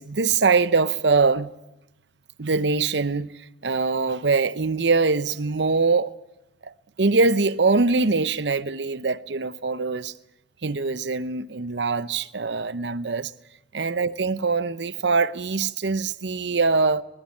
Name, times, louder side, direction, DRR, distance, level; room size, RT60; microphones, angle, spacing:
voice 1, 0.0-1.5 2.4-3.3 3.6-6.1 6.6-6.7 7.0-10.1 10.6-13.3 13.7-17.0, right 4 dB, 70° right, 0.8 m, -23 dB
22.0 x 20.0 x 8.6 m
head